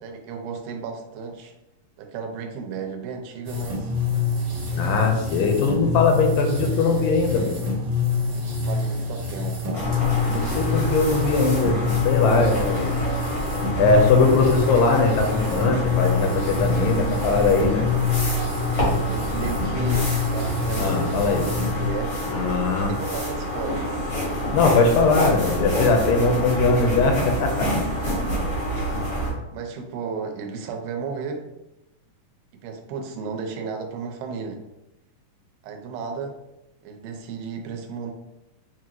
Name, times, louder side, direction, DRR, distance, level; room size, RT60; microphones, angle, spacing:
voice 1, 0.0-1.5 2.0-3.9 8.3-9.9 18.7-21.2 21.6-22.2 22.9-24.1 25.1-25.3 28.0-28.4 28.7-29.0 29.5-31.5 32.6-34.6 35.6-36.4 36.8-38.1, right 5 dB, 85° right, 4 dB, 2.3 m, -34 dB
sound 1, 3.4-21.9, left 4 dB, 55° right, 1.3 m, -26 dB
voice 2, 4.8-7.6 10.3-12.9 13.8-17.9 20.8-21.5 22.3-22.9 24.5-27.7, left 4 dB, 85° left, 3 dB, 2.3 m, -20 dB
sound 2, 9.7-29.3, equal, 65° left, 0.6 m, -27 dB
6.2 x 2.4 x 2.9 m, 0.91 s
omnidirectional pair, 3.9 m